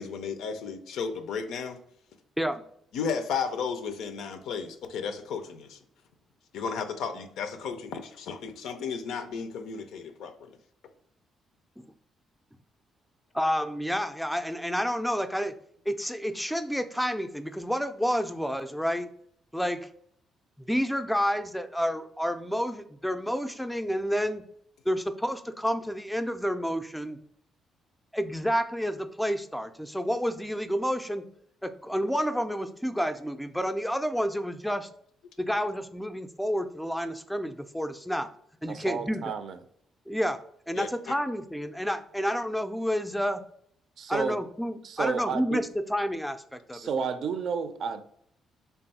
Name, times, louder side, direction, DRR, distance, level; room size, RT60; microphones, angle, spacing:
voice 1, 0.0-1.8 2.9-5.8 6.5-10.6 40.8-41.1, left 6 dB, 85° left, 8 dB, 0.4 m, -34 dB
voice 2, 13.3-15.5 15.9-19.1 19.5-19.9 20.6-24.4 24.9-27.2 28.1-31.2 31.6-34.9 35.4-38.3 38.6-39.3 40.1-40.4 40.7-43.4 44.1-46.8, equal, ahead, 9 dB, 0.3 m, -29 dB
voice 3, 38.7-39.6 44.0-44.4 44.8-45.6 46.7-48.0, right 6 dB, 65° right, 10 dB, 0.4 m, -31 dB
3.4 x 2.3 x 4.0 m, 0.67 s
cardioid pair, 90°, 0 cm